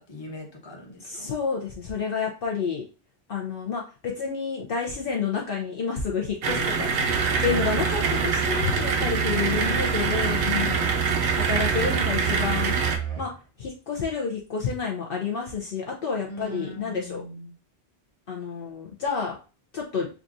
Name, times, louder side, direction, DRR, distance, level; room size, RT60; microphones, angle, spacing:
voice 1, 0.0-1.3 9.4-9.9 16.3-17.5, left 1 dB, 25° left, 0 dB, 1.0 m, -39 dB
voice 2, 1.0-2.8 3.3-6.9 7.4-10.9 11.3-12.8 13.2-13.3 13.6-17.2 18.3-19.4 19.7-20.1, left 5 dB, 60° left, 0 dB, 0.8 m, -29 dB
sound 1, 6.4-13.0, right 5 dB, 90° right, 0.9 m, -25 dB
Musical instrument, 7.0-13.4, right 9 dB, 30° right, 0.7 m, -32 dB
5.9 x 2.4 x 2.5 m, 0.34 s
omnidirectional pair, 1.1 m